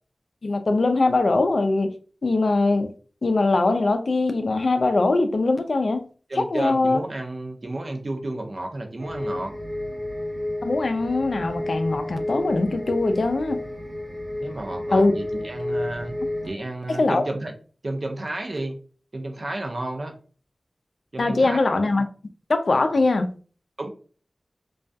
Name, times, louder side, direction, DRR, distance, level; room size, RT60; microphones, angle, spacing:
voice 1, 0.4-1.9 2.2-2.9 3.2-6.1 6.4-7.0 10.6-13.6 14.9-15.1 17.0-17.2 21.2-22.0 22.5-23.3, left 2 dB, 75° left, 0.3 m, -21 dB
voice 2, 6.3-9.5 14.4-16.1 16.4-17.5 17.8-18.8 19.1-20.1 21.1-21.6 23.8-23.9, right 2 dB, 60° right, 0.5 m, -31 dB
sound 1, 9.0-16.5, left 1 dB, 85° right, 0.8 m, -31 dB
2.3 x 2.2 x 2.5 m
wide cardioid pair, 55°, 0 cm